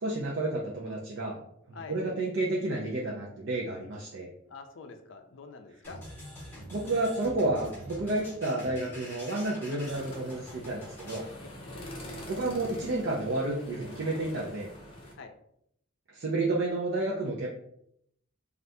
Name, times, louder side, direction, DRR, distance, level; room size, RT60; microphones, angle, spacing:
voice 1, 0.0-1.4 1.7-4.3 6.7-11.2 12.3-14.7 16.1-17.5, right 2 dB, 65° right, -3 dB, 0.5 m, -31 dB
voice 2, 4.5-6.0 15.2-15.3, left 5 dB, 70° left, 6 dB, 0.4 m, -45 dB
sound 1, 5.8-11.3, equal, 10° left, 1.2 m, -45 dB
sound 2, 9.8-15.1, left 1 dB, 25° left, 0.6 m, -45 dB
2.6 x 2.4 x 3.3 m, 0.72 s
head